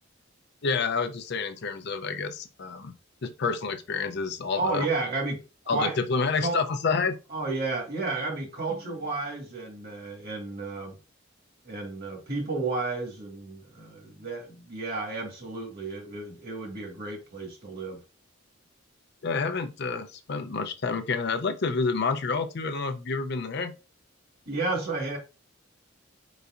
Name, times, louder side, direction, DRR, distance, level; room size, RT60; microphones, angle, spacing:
voice 1, 0.6-2.9 3.2-4.9 5.7-7.2 19.2-23.7, left 4 dB, 55° left, 0.5 m, -29 dB
voice 2, 4.5-5.4 5.7-6.0 6.4-6.6 7.3-11.0 11.6-18.0 24.4-25.2, right 3 dB, 50° right, 1.6 m, -32 dB
4.6 x 4.0 x 2.4 m
head